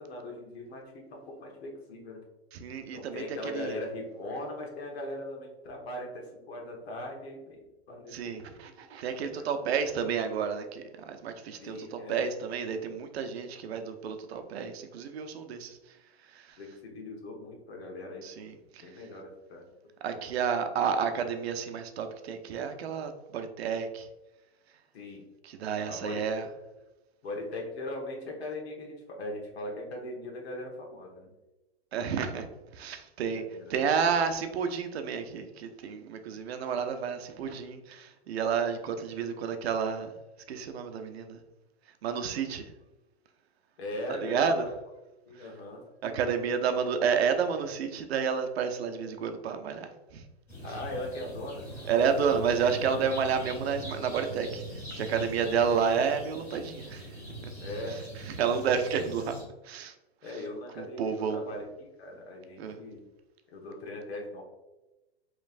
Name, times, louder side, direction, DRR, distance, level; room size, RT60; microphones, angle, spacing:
voice 1, 0.0-2.2 2.9-8.4 9.4-9.8 11.6-12.2 16.6-18.5 18.8-19.7 20.1-20.3 24.9-25.3 25.9-26.4 27.2-31.3 33.3-33.7 43.8-44.7 45.3-46.1 50.6-51.7 57.6-58.0 60.2-63.0 63.5-64.4, left 1 dB, 75° left, 0 dB, 1.3 m, -40 dB
voice 2, 2.5-3.8 8.1-16.0 16.3-16.6 18.2-19.0 20.0-24.1 25.4-26.4 31.9-32.5 32.7-33.4 33.7-40.1 40.5-41.4 42.0-42.7 44.1-44.7 45.3-45.5 46.0-50.3 51.9-54.6 54.9-57.1 57.9-59.3 59.6-59.9 60.8-61.4 62.6-62.8, right 6 dB, 80° right, 7 dB, 0.7 m, -30 dB
sound 1, 50.5-59.4, right 1 dB, 10° left, 1.5 m, -42 dB
5.2 x 3.2 x 2.5 m, 1.0 s
supercardioid pair, 165°, 31 cm